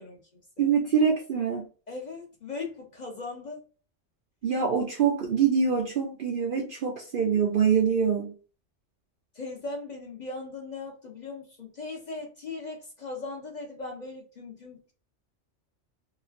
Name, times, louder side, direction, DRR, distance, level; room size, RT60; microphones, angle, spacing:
voice 1, 0.0-0.7 1.9-3.6 9.3-14.9, left 3 dB, 45° left, -1 dB, 0.7 m, -39 dB
voice 2, 0.6-1.6 4.4-8.3, right 6 dB, 60° right, 0 dB, 0.6 m, -24 dB
3.1 x 2.4 x 2.4 m, 0.37 s
omnidirectional pair, 1.3 m